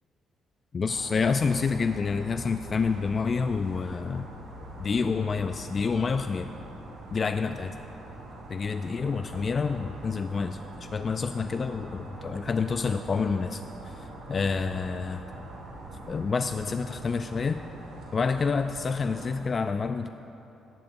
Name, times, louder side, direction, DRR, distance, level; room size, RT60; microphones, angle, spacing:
voice 1, 0.7-4.3 4.8-6.5 7.1-7.7 8.5-15.2 16.1-17.6 18.1-20.1, left 5 dB, 40° left, 8 dB, 0.3 m, -28 dB
sound 1, 0.9-19.4, right 1 dB, 80° right, 2.5 m, -43 dB
18.0 x 9.0 x 2.6 m, 3.0 s
cardioid pair, 90°, 0 cm